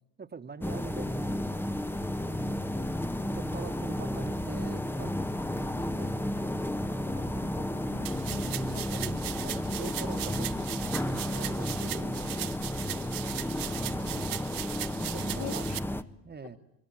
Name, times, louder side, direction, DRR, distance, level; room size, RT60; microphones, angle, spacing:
voice 1, 0.2-1.6 2.2-5.3 5.5-7.9 9.1-13.1 13.5-14.4 15.1-15.7 16.2-16.6, right 5 dB, 25° right, 10 dB, 1.9 m, -46 dB
sound 1, 0.6-16.0, left 1 dB, 5° left, 1.3 m, -32 dB
voice 2, 7.7-9.0 13.6-14.0 15.4-16.1, left 7 dB, 75° left, 3 dB, 3.4 m, -45 dB
sound 2, 8.1-15.8, right 16 dB, 50° right, 1.1 m, -38 dB
27.0 x 23.5 x 9.0 m, 0.79 s
hypercardioid pair, 70°, 42 cm